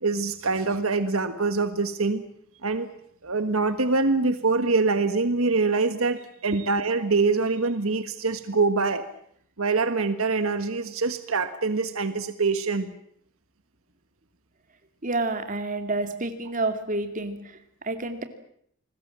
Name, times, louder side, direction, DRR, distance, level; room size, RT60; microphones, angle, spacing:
voice 1, 0.0-2.2 2.6-2.9 3.2-9.0 9.6-12.9, right 3 dB, 75° right, 10 dB, 1.5 m, -24 dB
voice 2, 15.0-18.2, right 2 dB, 40° right, 7 dB, 2.6 m, -29 dB
29.0 x 20.5 x 7.6 m, 0.67 s
head